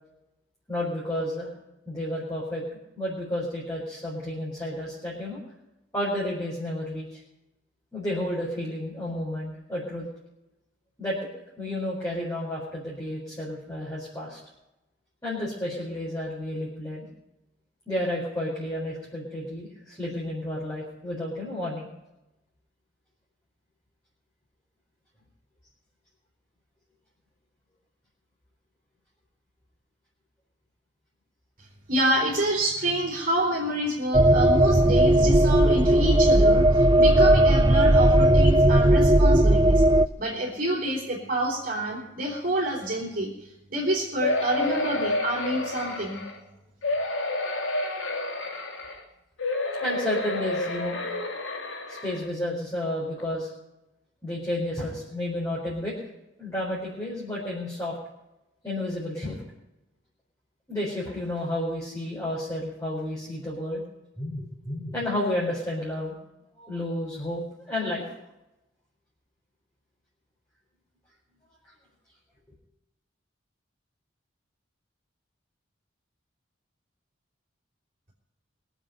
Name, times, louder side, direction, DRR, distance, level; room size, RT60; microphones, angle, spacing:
voice 1, 0.7-1.5 1.9-2.6 3.0-5.4 5.9-7.1 7.9-10.0 11.0-11.3 11.6-14.4 15.2-17.1 17.9-21.9 49.8-51.1 51.9-53.5 54.2-55.9 56.4-58.0 58.6-59.4 60.7-63.8 64.2-66.1 66.6-68.0, left 1 dB, 15° left, -7 dB, 4.5 m, -31 dB
voice 2, 31.9-39.8 40.2-43.3 43.7-46.2, right 1 dB, 45° right, -4 dB, 4.1 m, -27 dB
sound 1, 34.1-40.1, right 1 dB, 20° right, 0.5 m, -17 dB
sound 2, 44.2-46.4 46.8-49.0 49.4-52.2 52.8-52.9 53.2-53.3, left 2 dB, 75° left, 2.6 m, -30 dB
23.5 x 8.1 x 5.4 m, 0.94 s
head